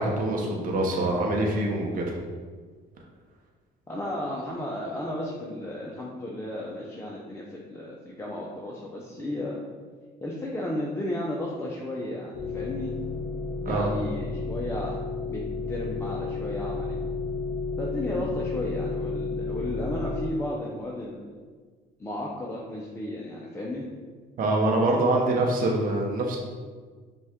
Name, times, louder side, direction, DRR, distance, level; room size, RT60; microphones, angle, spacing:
voice 1, 0.0-2.1 13.6-13.9 24.4-26.4, right 2 dB, 55° right, -1 dB, 0.8 m, -25 dB
voice 2, 3.9-9.6 10.2-12.9 13.6-15.0 15.3-15.4 15.7-17.0 17.8-21.2 22.0-23.9, left 1 dB, 15° left, -4 dB, 0.5 m, -34 dB
sound 1, 12.3-20.3, left 4 dB, 30° left, 1.1 m, -32 dB
5.3 x 2.3 x 3.5 m, 1.5 s
cardioid pair, 110°, 17 cm